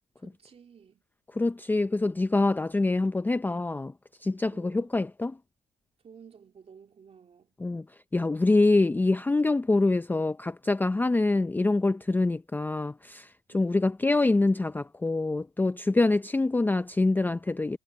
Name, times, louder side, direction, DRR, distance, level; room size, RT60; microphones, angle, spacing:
voice 1, 0.2-1.0 4.5-4.9 6.0-7.6 13.5-13.8, right 6 dB, 35° right, 3.1 m, -53 dB
voice 2, 1.3-3.9 4.2-5.4 7.6-7.9 8.1-17.8, left 2 dB, 10° left, 0.5 m, -25 dB
cardioid pair, 110°, 17 cm